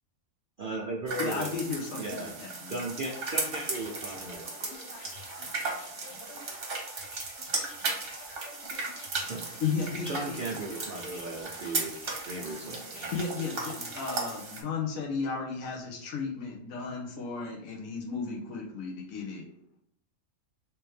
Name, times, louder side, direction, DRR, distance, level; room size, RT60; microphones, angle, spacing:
voice 1, 0.6-1.5 2.0-2.4 2.7-4.5 9.2-9.4 10.1-12.0 12.2-13.1, right 2 dB, 70° right, -1 dB, 0.5 m, -36 dB
sound 1, 1.1-14.6, right 3 dB, 45° right, 1.0 m, -36 dB
voice 2, 1.2-2.7 9.6-10.4 13.1-19.5, left 5 dB, 75° left, 0 dB, 1.2 m, -34 dB
voice 3, 2.9-4.3 4.6-6.2, equal, 40° left, -4 dB, 1.5 m, -52 dB
sound 2, 3.8-14.4, left 4 dB, 60° left, 0.8 m, -50 dB
3.4 x 2.9 x 3.1 m, 0.74 s
omnidirectional pair, 1.5 m